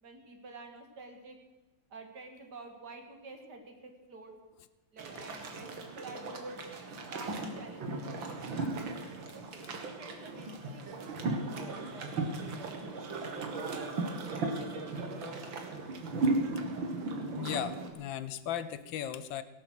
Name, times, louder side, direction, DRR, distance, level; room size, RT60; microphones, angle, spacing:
voice 1, 0.0-1.4 1.9-4.3 4.9-6.6 7.0-8.6 9.3-13.1 13.6-15.6, right 3 dB, 55° right, 4 dB, 2.6 m, -49 dB
sound 1, 5.0-17.9, right 3 dB, 75° right, 2.4 m, -36 dB
voice 2, 17.4-19.4, left 10 dB, 75° left, 14 dB, 1.4 m, -37 dB
18.0 x 11.0 x 6.4 m, 1.2 s
omnidirectional pair, 2.2 m